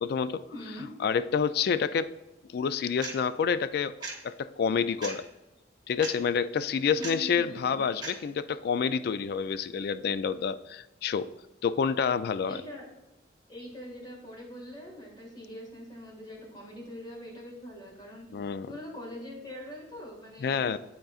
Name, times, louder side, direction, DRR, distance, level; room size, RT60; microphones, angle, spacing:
voice 1, 0.0-0.4 1.0-2.1 2.5-3.9 4.2-5.3 5.9-11.3 11.6-12.6 18.3-18.7 20.4-20.8, left 6 dB, 55° left, 14 dB, 0.3 m, -28 dB
voice 2, 0.5-0.9 7.0-7.8 12.4-12.8 13.5-18.3 18.7-20.8, left 1 dB, 25° left, -2 dB, 1.8 m, -43 dB
sound 1, 3.0-3.2 4.0-4.1 5.0-5.2 6.0-6.1 7.0-7.2 8.0-8.2, right 3 dB, 25° right, 1.4 m, -36 dB
11.5 x 3.8 x 2.4 m, 1.0 s
head